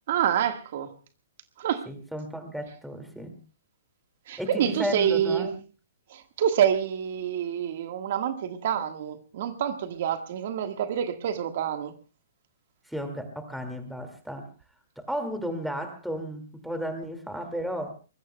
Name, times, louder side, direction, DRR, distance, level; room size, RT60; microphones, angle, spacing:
voice 1, 0.1-0.9 1.6-1.9 4.3-5.5 6.1-11.9, right 9 dB, 50° right, 1.5 m, -27 dB
voice 2, 1.9-3.4 4.4-5.5 12.9-14.5 15.0-17.9, equal, ahead, 2.1 m, -34 dB
24.5 x 21.0 x 2.2 m
hypercardioid pair, 160°, 0 cm